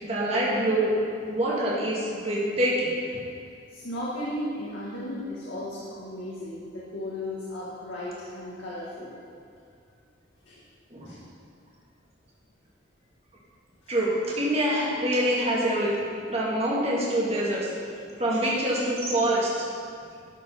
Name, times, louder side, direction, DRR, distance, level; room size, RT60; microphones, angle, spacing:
voice 1, 0.0-0.9 1.3-3.2 10.9-11.1 13.9-17.7 18.2-19.7, right 1 dB, 30° right, -6 dB, 1.9 m, -25 dB
voice 2, 3.7-9.1 10.4-10.6 11.0-11.2 13.8-14.0, left 1 dB, 80° left, -8 dB, 1.8 m, -35 dB
12.0 x 5.1 x 5.6 m, 2.3 s
head